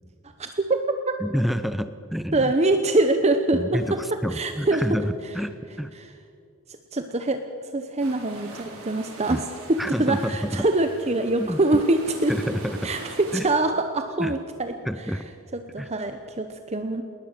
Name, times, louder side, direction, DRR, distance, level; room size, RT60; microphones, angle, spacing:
voice 1, 0.4-1.1 2.3-4.8 6.0-6.1 6.7-7.4 7.7-12.4 12.8-15.2 15.5-17.0, right 2 dB, 30° right, 7 dB, 0.8 m, -24 dB
voice 2, 1.2-2.5 3.5-5.9 9.3-9.4 9.8-10.7 11.4-11.6 12.3-12.9 13.3-13.5 14.2-14.3 14.9-15.3 15.8-15.9, equal, ahead, 11 dB, 0.5 m, -28 dB
sound 1, 8.0-13.4, right 2 dB, 70° right, 5.1 m, -42 dB
20.5 x 19.5 x 6.7 m, 2.4 s
head